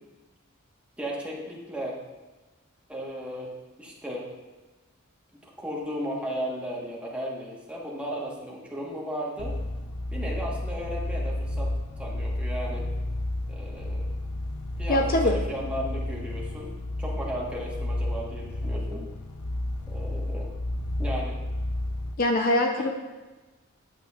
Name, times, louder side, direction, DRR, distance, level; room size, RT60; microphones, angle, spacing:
voice 1, 1.0-2.0 2.9-3.5 3.8-4.3 5.4-9.6 10.1-12.8 13.5-14.1 14.8-16.7 17.0-19.1 19.9-20.5 21.0-21.4, equal, 5° right, -4 dB, 1.3 m, -35 dB
sound 1, 9.4-22.1, left 1 dB, 85° left, 0.6 m, -31 dB
voice 2, 14.9-15.4 22.2-23.0, left 1 dB, 45° left, 3 dB, 0.5 m, -23 dB
8.8 x 7.4 x 2.4 m, 1.2 s
head